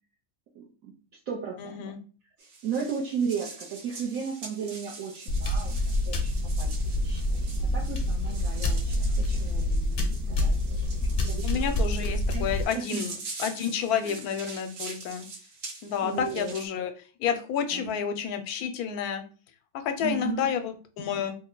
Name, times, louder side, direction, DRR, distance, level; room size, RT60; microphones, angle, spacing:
voice 1, 0.5-0.9 1.3-1.9 2.4-5.7 6.1-6.3 6.6-7.2 7.7-10.9 11.2-11.7 12.0-12.5 12.7-12.9 14.0-14.2 16.0-16.6 17.7-17.9 20.0-20.5, right 6 dB, 70° right, -3 dB, 1.1 m, -35 dB
voice 2, 1.6-2.0 11.4-13.1 13.4-15.3 15.8-16.9 17.2-19.2 19.8-21.4, left 8 dB, 80° left, 7 dB, 1.1 m, -30 dB
sound 1, 2.4-16.7, right 3 dB, 85° right, 1.5 m, -44 dB
sound 2, 5.3-12.6, left 1 dB, 55° left, 0.7 m, -27 dB
3.3 x 2.1 x 3.7 m, 0.38 s
omnidirectional pair, 1.6 m